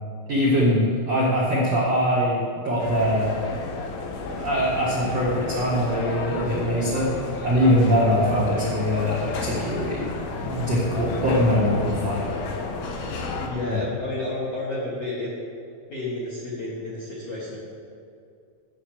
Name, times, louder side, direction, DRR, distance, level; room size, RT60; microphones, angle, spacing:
voice 1, 0.3-3.3 4.3-7.1 7.4-10.1 10.4-12.3 13.7-13.8, equal, 65° right, -6 dB, 1.6 m, -22 dB
sound 1, 2.8-13.5, left 3 dB, 85° left, 3.7 m, -32 dB
voice 2, 13.4-15.3 15.9-17.6, left 2 dB, 55° left, -7 dB, 1.8 m, -31 dB
9.8 x 7.4 x 8.1 m, 2.4 s
omnidirectional pair, 5.7 m